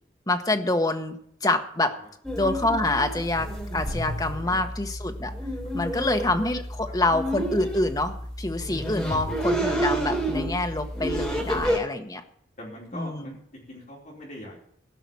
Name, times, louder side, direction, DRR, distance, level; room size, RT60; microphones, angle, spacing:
voice 1, 0.3-2.0 2.4-5.3 5.7-12.2 12.9-13.4, left 2 dB, 20° left, 6 dB, 1.0 m, -26 dB
sound 1, 2.2-11.8, right 1 dB, ahead, 3.2 m, -30 dB
voice 2, 11.4-11.8 12.6-14.6, left 1 dB, 40° left, -4 dB, 4.5 m, -42 dB
14.5 x 5.9 x 9.5 m, 0.67 s
head